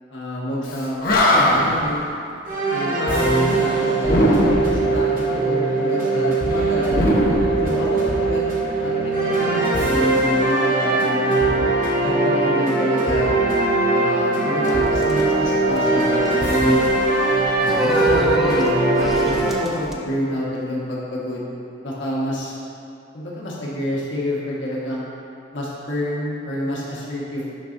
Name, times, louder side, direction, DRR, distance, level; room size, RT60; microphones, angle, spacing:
voice 1, 0.1-2.1 2.7-7.0 7.6-11.5 12.0-13.3 13.9-16.9 17.6-21.5 21.8-22.6 23.1-25.1 25.5-27.6, left 1 dB, 80° left, -6 dB, 1.5 m, -28 dB
Animal, 0.7-1.8 4.0-4.9 6.9-8.2, left 1 dB, 50° left, 0.9 m, -19 dB
sound 1, 2.4-19.5, right 2 dB, 45° right, 1.3 m, -20 dB
sound 2, 14.7-19.9, equal, ahead, 0.4 m, -27 dB
10.5 x 5.6 x 2.7 m, 2.5 s
head